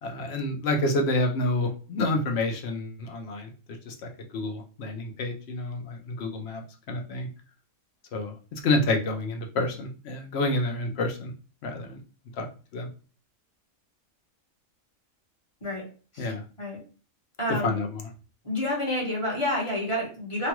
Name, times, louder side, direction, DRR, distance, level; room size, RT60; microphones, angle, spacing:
voice 1, 0.0-3.5 3.9-6.6 6.9-7.3 8.1-11.3 11.6-12.0 12.4-12.5 12.7-12.9 16.2-16.4 17.6-18.1, left 2 dB, 60° left, 4 dB, 0.8 m, -28 dB
voice 2, 17.4-17.8 18.4-20.5, left 1 dB, 25° left, -4 dB, 0.9 m, -29 dB
3.0 x 2.3 x 2.9 m, 0.36 s
omnidirectional pair, 1.3 m